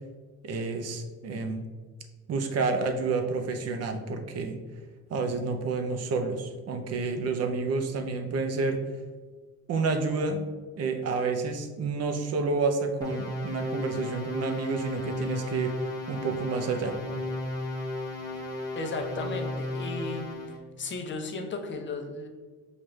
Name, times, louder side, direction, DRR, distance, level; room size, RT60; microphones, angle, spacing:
voice 1, 0.4-1.6 2.3-4.6 5.1-8.8 9.7-10.4 10.8-15.7 16.1-17.0, right 4 dB, 50° right, 6 dB, 0.6 m, -29 dB
sound 1, 13.0-20.6, left 2 dB, 10° left, 1.1 m, -34 dB
voice 2, 18.7-20.3 20.8-22.3, left 3 dB, 35° left, 4 dB, 0.7 m, -35 dB
6.3 x 2.4 x 3.2 m, 1.4 s
cardioid pair, 115°, 32 cm